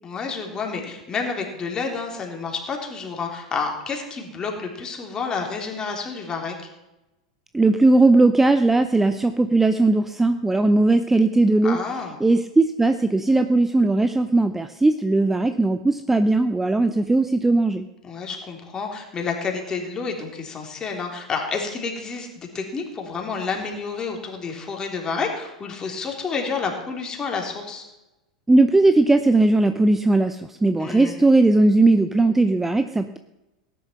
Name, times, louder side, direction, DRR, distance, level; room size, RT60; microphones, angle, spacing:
voice 1, 0.0-6.5 11.6-12.2 18.0-27.8 30.8-31.2, left 5 dB, 20° left, 1 dB, 3.4 m, -29 dB
voice 2, 7.5-11.8 12.2-17.8 28.5-33.2, right 2 dB, 10° right, 10 dB, 0.6 m, -18 dB
17.5 x 10.0 x 5.8 m, 0.98 s
figure-of-eight pair, 90°, 3 cm